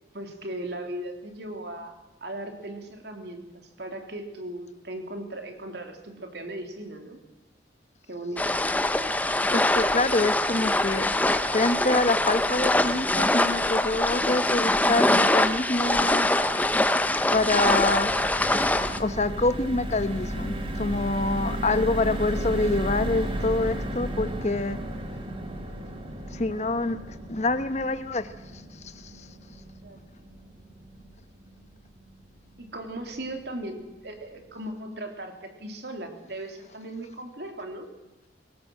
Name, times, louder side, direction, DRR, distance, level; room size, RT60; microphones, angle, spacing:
voice 1, 0.1-7.2 8.1-8.5 21.5-21.6 29.8-30.0 32.6-37.9, right 1 dB, 60° right, 4 dB, 3.2 m, -37 dB
sound 1, 8.4-19.0, left 1 dB, 10° left, 0.9 m, -23 dB
voice 2, 9.5-11.1 11.4-16.3 17.3-18.1 19.0-24.8 26.3-29.3, left 2 dB, 40° left, 11 dB, 1.0 m, -26 dB
sound 2, 16.5-32.8 33.2-33.3 33.6-33.8, right 1 dB, 30° right, 2.0 m, -35 dB
23.0 x 17.5 x 7.8 m, 1.1 s
head